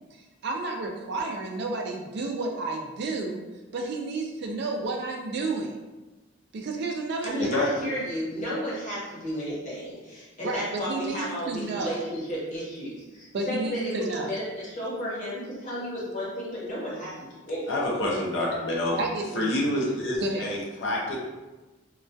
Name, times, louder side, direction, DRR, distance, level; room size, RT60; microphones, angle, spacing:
voice 1, 0.4-3.4 3.7-5.8 6.5-7.6 10.4-12.0 13.3-14.3 19.0-19.5 20.2-20.5, right 3 dB, 50° right, 2 dB, 0.3 m, -31 dB
voice 2, 7.2-17.7, equal, 40° left, -7 dB, 0.8 m, -33 dB
voice 3, 17.7-19.0 19.3-21.2, left 1 dB, 60° left, -3 dB, 0.5 m, -27 dB
2.2 x 2.2 x 2.5 m, 1.1 s
head